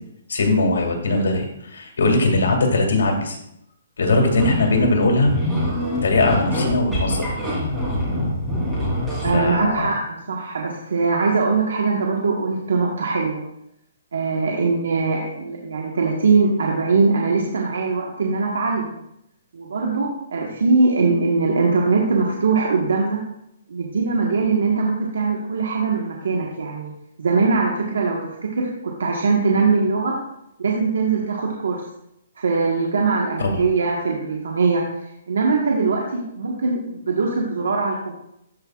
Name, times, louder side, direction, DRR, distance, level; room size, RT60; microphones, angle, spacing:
voice 1, 0.3-3.4 4.0-5.3 6.0-7.3 9.3-9.9 33.4-33.6, left 2 dB, 85° left, 2 dB, 2.2 m, -20 dB
sound 1, 4.3-9.5, equal, 5° right, 3.1 m, -24 dB
voice 2, 9.2-13.4 14.1-18.9 19.5-23.2 23.7-26.9 27.2-30.1 30.6-31.8 32.4-34.8 35.3-38.1, right 4 dB, 85° right, -1 dB, 1.3 m, -21 dB
13.5 x 5.4 x 2.4 m, 0.78 s
hypercardioid pair, 165°, 0 cm